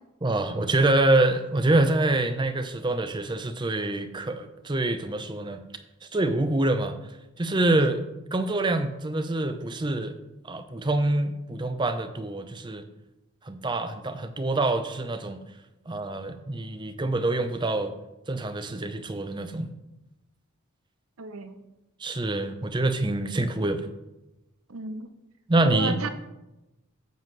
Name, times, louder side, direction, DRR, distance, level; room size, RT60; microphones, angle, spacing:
voice 1, 0.2-5.6 6.1-7.0 7.4-8.0 8.3-10.1 10.5-12.8 13.5-15.4 15.9-17.9 18.3-19.7 22.0-23.8 25.5-26.1, right 2 dB, 20° right, 9 dB, 0.5 m, -26 dB
voice 2, 21.2-21.5 24.7-25.1 25.6-26.1, right 3 dB, 85° right, 10 dB, 0.7 m, -32 dB
9.1 x 7.4 x 3.2 m, 0.98 s
head